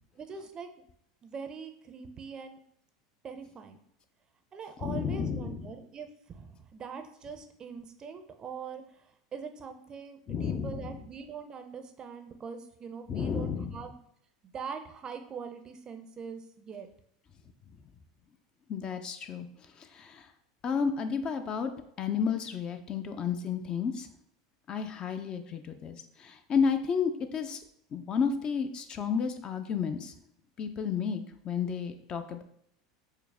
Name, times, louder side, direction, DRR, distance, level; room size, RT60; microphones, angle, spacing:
voice 1, 0.2-0.9 1.2-2.6 3.2-3.8 4.5-14.0 14.5-16.9, right 6 dB, 30° right, 7 dB, 0.5 m, -43 dB
voice 2, 4.8-5.7 10.3-11.0 13.1-13.8 18.7-19.5 19.8-20.3 20.6-21.7 22.0-24.1 24.7-27.6 27.9-30.1 30.6-32.4, left 6 dB, 35° left, 8 dB, 0.4 m, -32 dB
4.6 x 2.0 x 3.3 m, 0.71 s
hypercardioid pair, 90°, 3 cm